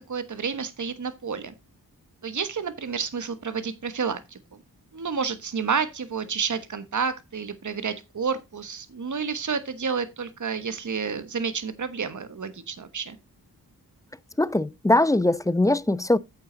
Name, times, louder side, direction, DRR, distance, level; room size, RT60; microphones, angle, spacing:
voice 1, 0.0-1.5 2.2-4.4 4.9-13.2, right 6 dB, 50° right, 1.3 m, -30 dB
voice 2, 14.4-16.2, left 1 dB, 10° left, 0.4 m, -21 dB
8.4 x 7.6 x 3.9 m
wide cardioid pair, 70°, 38 cm